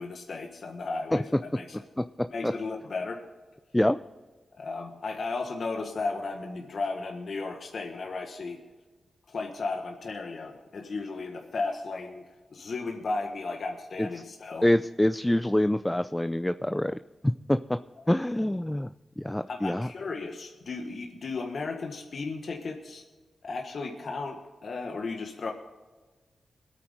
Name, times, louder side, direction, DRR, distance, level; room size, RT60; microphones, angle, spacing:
voice 1, 0.0-1.8 2.3-3.2 4.6-8.6 9.3-12.2 12.5-14.6 16.7-16.8 18.0-18.1 19.5-23.0 23.4-25.5, left 3 dB, 70° left, 2 dB, 1.5 m, -35 dB
voice 2, 2.0-2.5 3.7-4.0 14.0-14.1 14.6-17.8 18.1-19.9, left 1 dB, 10° left, 10 dB, 0.5 m, -26 dB
21.5 x 9.1 x 3.8 m, 1.3 s
cardioid pair, 45°, 0 cm